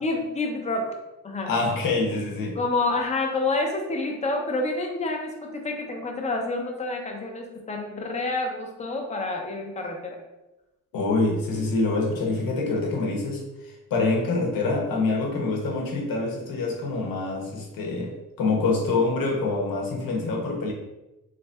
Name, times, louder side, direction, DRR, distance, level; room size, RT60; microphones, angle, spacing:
voice 1, 0.0-0.9 1.2-1.5 2.6-10.2, left 2 dB, 20° left, 2 dB, 0.6 m, -28 dB
voice 2, 1.5-2.6 10.9-20.7, left 3 dB, 75° left, 0 dB, 0.9 m, -26 dB
3.3 x 2.6 x 3.3 m, 0.98 s
cardioid pair, 145°, 34 cm